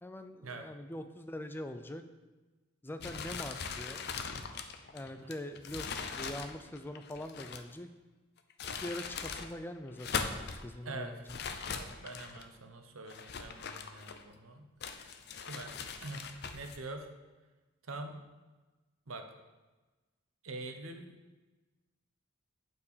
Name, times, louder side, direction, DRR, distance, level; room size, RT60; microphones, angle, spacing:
voice 1, 0.0-2.0 2.8-4.1 4.9-7.9 8.8-11.4, left 1 dB, 10° left, 8 dB, 0.3 m, -43 dB
sound 1, 3.0-7.8 8.4-9.5 9.9-10.6 11.3-12.5 13.1-14.4 14.8-16.8, left 5 dB, 50° left, 0.6 m, -40 dB
voice 2, 10.8-11.1 11.7-14.7 15.4-17.1 17.8-18.2 19.1-19.3 20.4-21.2, right 2 dB, 80° right, 6 dB, 1.0 m, -45 dB
8.4 x 4.5 x 6.7 m, 1.2 s
head